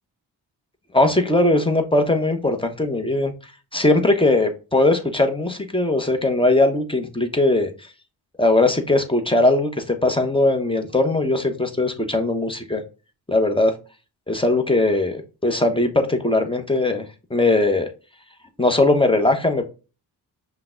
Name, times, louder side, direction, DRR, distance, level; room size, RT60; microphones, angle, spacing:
voice 1, 0.9-3.3 3.7-7.7 8.4-12.8 13.3-13.7 14.3-17.9 18.6-19.7, left 2 dB, 10° left, 6 dB, 1.0 m, -20 dB
5.7 x 2.3 x 3.8 m, 0.32 s
hypercardioid pair, 45°, 47 cm